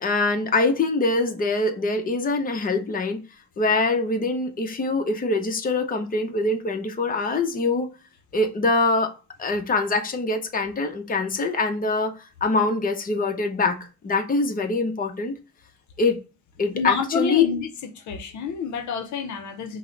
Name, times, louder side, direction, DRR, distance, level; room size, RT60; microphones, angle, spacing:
voice 1, 0.0-3.2 3.6-7.9 8.3-9.1 9.4-12.1 12.4-13.8 14.0-15.3 16.0-16.2 16.6-17.5, left 3 dB, 30° left, 0.8 m, -23 dB
voice 2, 16.7-17.7 17.9-19.8, left 6 dB, 70° left, 0.7 m, -28 dB
5.4 x 2.1 x 3.8 m
cardioid pair, 90°, 30 cm